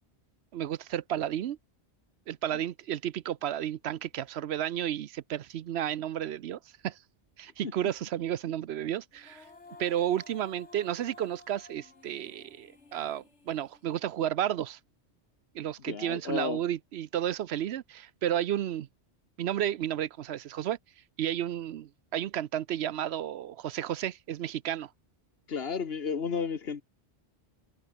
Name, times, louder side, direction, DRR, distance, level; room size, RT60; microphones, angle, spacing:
voice 1, 0.5-1.6 2.3-7.0 7.4-9.4 9.8-14.8 15.5-18.9 19.4-20.8 21.2-24.9, right 11 dB, 70° right, 0.9 m, -32 dB
Female singing, 9.1-14.3, left 3 dB, 85° left, 2.9 m, -54 dB
voice 2, 15.9-16.6 25.5-26.8, left 5 dB, 65° left, 1.5 m, -32 dB
omnidirectional pair, 1.1 m